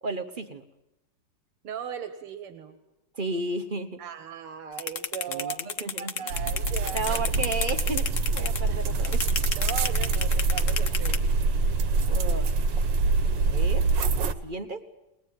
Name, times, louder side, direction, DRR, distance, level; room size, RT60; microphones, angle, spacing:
voice 1, 0.0-0.6 3.1-4.0 5.3-5.5 5.8-6.1 6.9-9.2 12.1-12.5 13.5-13.8 14.2-14.8, right 3 dB, 40° right, 9 dB, 0.7 m, -33 dB
voice 2, 1.6-2.8 4.0-7.1 8.7-8.8 9.4-11.4, right 8 dB, 90° right, 9 dB, 2.3 m, -38 dB
sound 1, 4.8-11.2, left 6 dB, 45° left, 1.2 m, -30 dB
sound 2, 6.3-14.3, right 3 dB, 65° right, 1.7 m, -25 dB
22.0 x 20.0 x 9.5 m, 0.91 s
omnidirectional pair, 2.3 m